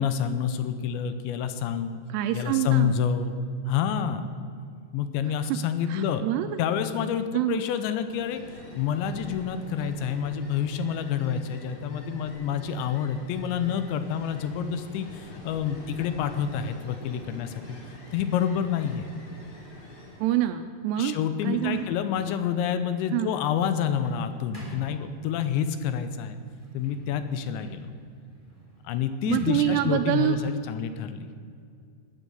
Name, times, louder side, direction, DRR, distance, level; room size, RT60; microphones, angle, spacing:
voice 1, 0.0-1.9 2.3-3.3 3.7-4.3 4.9-6.2 6.6-8.4 8.7-17.5 18.1-19.1 21.0-26.4 26.7-27.9 28.8-31.3, left 8 dB, 85° left, 10 dB, 3.1 m, -28 dB
voice 2, 2.1-2.9 5.4-5.6 5.9-6.6 7.3-7.6 20.2-21.2 21.4-21.9 23.1-23.3 29.2-30.4, right 13 dB, 85° right, 8 dB, 2.5 m, -26 dB
Ocean, 7.7-20.5, left 1 dB, 35° left, 3.0 m, -46 dB
Sliding door, 21.3-25.7 26.4-31.2, right 1 dB, 5° left, 3.1 m, -49 dB
18.5 x 9.3 x 7.9 m, 2.3 s
omnidirectional pair, 5.3 m